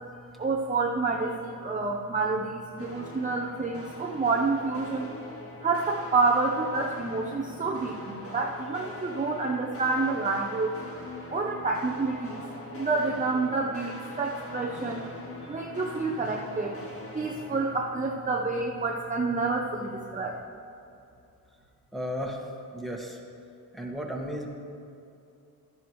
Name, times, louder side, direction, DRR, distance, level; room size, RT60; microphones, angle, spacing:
voice 1, 0.4-5.1 5.6-10.8 11.3-12.4 12.7-15.0 15.5-16.8 17.1-20.4, right 3 dB, 20° right, -1 dB, 0.8 m, -28 dB
sound 1, 2.8-17.8, left 1 dB, 35° left, 1.8 m, -43 dB
voice 2, 21.9-22.4 22.7-23.2 23.7-24.5, equal, ahead, -1 dB, 1.6 m, -34 dB
12.0 x 10.5 x 3.2 m, 2.7 s
cardioid pair, 85°, 38 cm